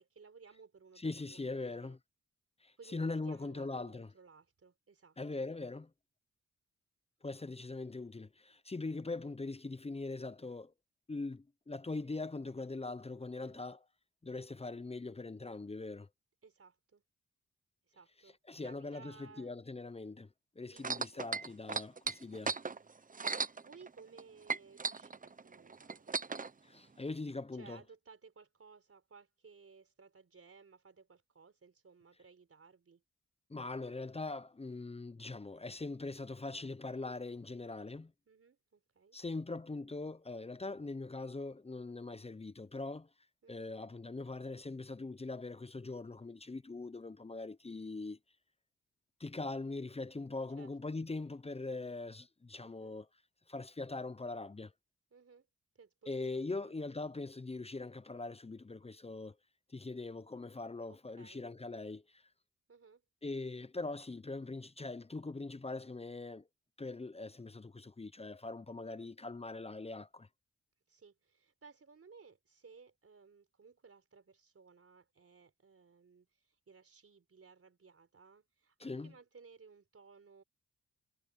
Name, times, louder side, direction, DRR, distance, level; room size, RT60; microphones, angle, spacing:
voice 1, 0.0-2.0 2.8-5.4 13.4-13.7 16.4-17.0 17.9-19.5 20.7-21.1 23.5-26.2 27.5-33.0 38.3-39.2 43.4-43.8 50.6-51.0 52.6-53.0 55.1-55.5 55.7-57.1 60.9-61.4 62.7-63.0 68.8-69.1 70.9-80.4, right 5 dB, 50° right, 4.4 m, -59 dB
voice 2, 1.0-2.0 2.6-4.1 5.2-5.9 7.2-10.7 11.1-13.8 14.2-16.1 18.5-22.6 26.6-27.8 33.5-38.1 39.1-43.1 43.5-48.2 49.2-53.1 53.5-54.7 56.1-59.4 59.7-62.2 63.2-66.5 66.8-70.3 78.8-79.1, left 3 dB, 20° left, 0.8 m, -42 dB
sound 1, 20.8-24.2 24.5-26.5 27.3-27.4, right 4 dB, 30° right, 0.9 m, -37 dB
cardioid pair, 65°, 29 cm